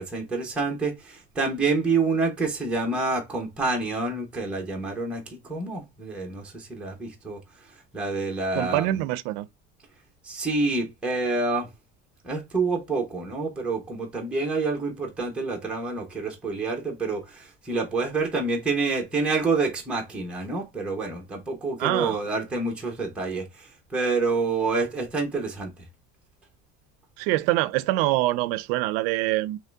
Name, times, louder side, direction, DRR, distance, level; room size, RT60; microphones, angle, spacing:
voice 1, 0.0-7.4 7.9-9.0 10.2-11.7 12.2-25.7, right 3 dB, 5° right, 0.9 m, -27 dB
voice 2, 8.5-9.5 21.8-22.2 27.2-29.6, right 17 dB, 85° right, 0.5 m, -25 dB
3.7 x 3.1 x 3.3 m
cardioid pair, 165°, 29 cm